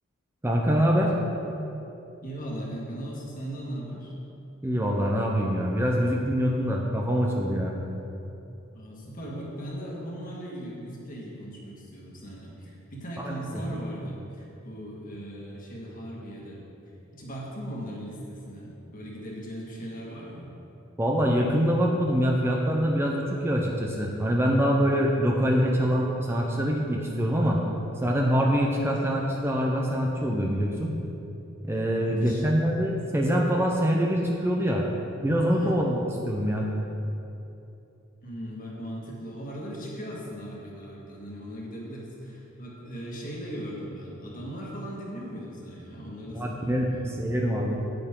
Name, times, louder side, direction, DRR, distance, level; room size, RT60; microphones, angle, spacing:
voice 1, 0.4-1.1 4.6-7.8 13.5-13.6 21.0-27.6 28.0-30.9 31.6-34.9 35.2-36.7 46.3-47.8, equal, 10° right, -1 dB, 0.7 m, -24 dB
voice 2, 2.2-4.1 8.7-16.6 17.1-20.5 32.0-32.5 35.5-35.8 38.2-47.1, equal, 45° left, -3 dB, 1.8 m, -38 dB
9.0 x 8.9 x 3.8 m, 2.8 s
head